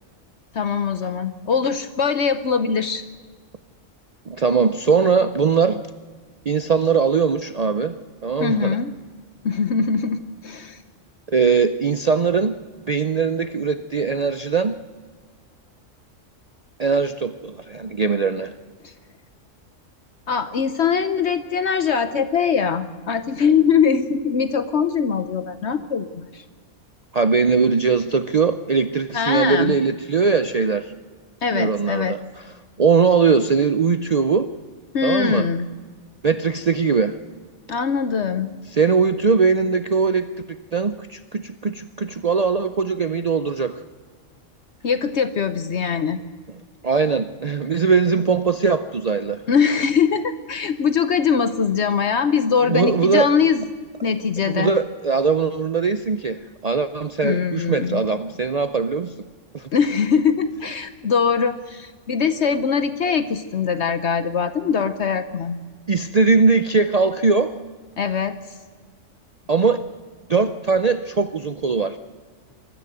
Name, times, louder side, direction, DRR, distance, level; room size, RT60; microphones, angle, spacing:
voice 1, 0.5-3.0 8.4-8.9 9.4-10.8 18.8-18.9 20.3-26.4 29.1-29.8 31.4-32.1 34.9-35.7 37.7-38.5 44.8-46.2 49.5-53.6 54.0-54.7 57.2-58.0 59.7-65.6 68.0-68.4, left 6 dB, 65° left, 10 dB, 1.1 m, -22 dB
voice 2, 4.3-5.8 6.5-7.9 8.2-8.8 11.3-12.6 12.9-14.8 16.8-18.5 27.1-30.9 31.5-32.2 32.8-34.5 35.0-35.5 36.2-37.2 38.7-40.3 40.7-43.8 46.8-49.4 52.7-53.3 54.4-59.1 59.5-59.7 65.9-67.6 69.5-69.8 70.3-72.0, right 5 dB, 45° right, 10 dB, 0.6 m, -20 dB
23.5 x 14.0 x 8.0 m, 1.5 s
omnidirectional pair, 1.3 m